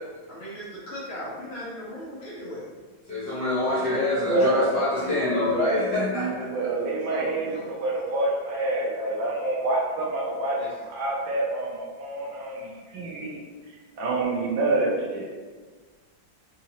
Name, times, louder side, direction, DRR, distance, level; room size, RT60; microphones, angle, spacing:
voice 1, 0.3-2.7 6.4-7.8 10.6-10.7 12.9-13.0, left 1 dB, 50° left, -6 dB, 0.8 m, -38 dB
voice 2, 3.1-6.5 12.2-12.3 12.7-12.8, left 2 dB, 65° left, -10 dB, 1.5 m, -26 dB
voice 3, 4.3-10.6 10.9-13.4 14.0-15.3, right 2 dB, 85° right, -3 dB, 1.4 m, -27 dB
3.9 x 2.8 x 2.8 m, 1.4 s
omnidirectional pair, 2.1 m